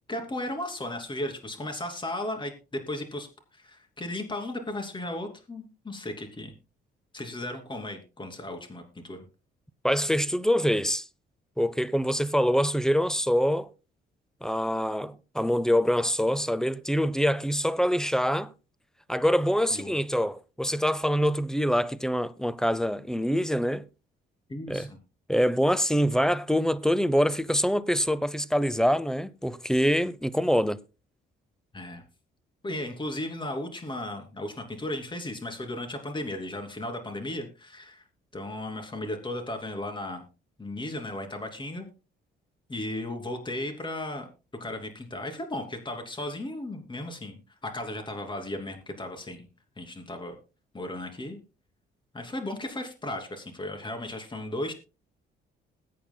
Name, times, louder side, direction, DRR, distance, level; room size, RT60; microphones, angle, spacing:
voice 1, 0.1-3.3 3.5-6.5 7.1-9.2 19.7-19.9 24.5-25.0 31.7-32.0 32.6-38.0 38.3-40.2 40.6-41.9 42.7-44.3 44.6-49.5 49.8-50.3 50.7-51.4 52.1-54.7, left 1 dB, 25° left, 2.9 m, -35 dB
voice 2, 9.8-11.0 11.6-13.7 14.4-18.5 19.1-23.8 24.7-24.9 25.3-30.8, equal, 5° left, 0.6 m, -25 dB
21.0 x 8.5 x 2.2 m
cardioid pair, 90°, 20 cm